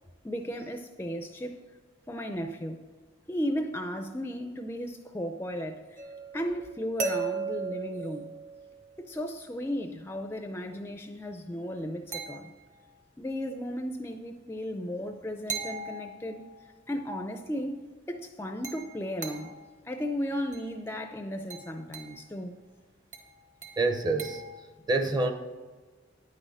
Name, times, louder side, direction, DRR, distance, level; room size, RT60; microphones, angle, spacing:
voice 1, 0.2-1.6 2.1-2.8 3.3-6.0 6.3-8.3 9.0-12.5 13.2-16.4 16.9-17.8 18.1-19.5 19.8-22.5, equal, 15° left, 6 dB, 0.4 m, -35 dB
sound 1, 6.0-9.0 12.1-12.9 15.5-16.7 18.6-19.7 20.5-20.8 21.5-22.2 23.1-24.6, right 4 dB, 40° right, 1.2 m, -38 dB
voice 2, 23.8-24.4 24.9-25.3, right 2 dB, 20° right, 7 dB, 0.7 m, -26 dB
9.6 x 6.3 x 6.4 m, 1.4 s
head